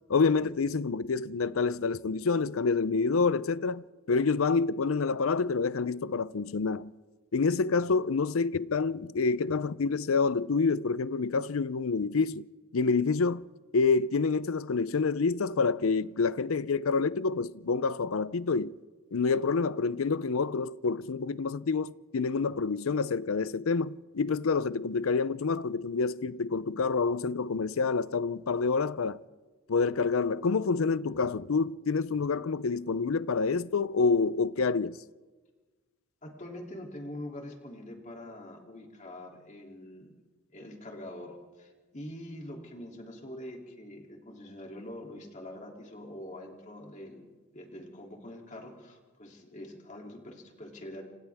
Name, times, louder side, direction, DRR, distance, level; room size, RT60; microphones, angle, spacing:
voice 1, 0.1-6.9 7.3-12.5 12.7-18.8 19.1-29.2 29.7-35.0, left 4 dB, 80° left, 0.6 m, -28 dB
voice 2, 36.2-40.1 40.5-47.2 47.5-51.0, left 1 dB, 35° left, 2.9 m, -44 dB
29.0 x 26.0 x 3.5 m
head